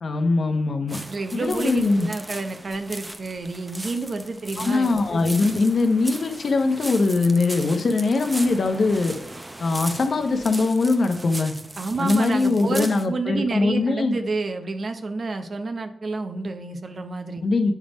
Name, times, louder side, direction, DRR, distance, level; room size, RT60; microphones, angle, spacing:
voice 1, 0.0-1.0 1.3-2.1 4.6-9.1 9.6-11.5 12.0-14.2 17.4-17.7, left 3 dB, 65° left, 6 dB, 0.9 m, -21 dB
sound 1, 0.9-13.1, right 1 dB, 20° right, 0.7 m, -37 dB
voice 2, 1.1-5.3 11.8-17.4, right 3 dB, 55° right, 7 dB, 0.8 m, -29 dB
8.6 x 3.5 x 5.2 m, 0.73 s
cardioid pair, 55°, 0 cm